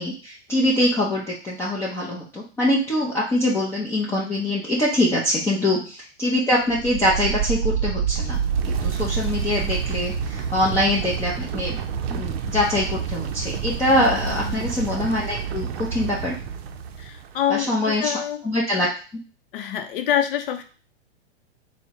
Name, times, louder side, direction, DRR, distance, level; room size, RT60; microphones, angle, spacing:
voice 1, 0.0-5.8 6.2-8.4 8.8-11.8 12.1-16.4 17.5-18.1 18.4-18.9, left 1 dB, 10° left, -5 dB, 0.5 m, -23 dB
sound 1, 6.6-17.4, right 7 dB, 65° right, 0.5 m, -28 dB
voice 2, 14.0-14.7 17.0-18.4 19.5-20.6, left 10 dB, 55° left, 6 dB, 0.6 m, -27 dB
3.5 x 2.1 x 4.2 m, 0.36 s
hypercardioid pair, 130°, 33 cm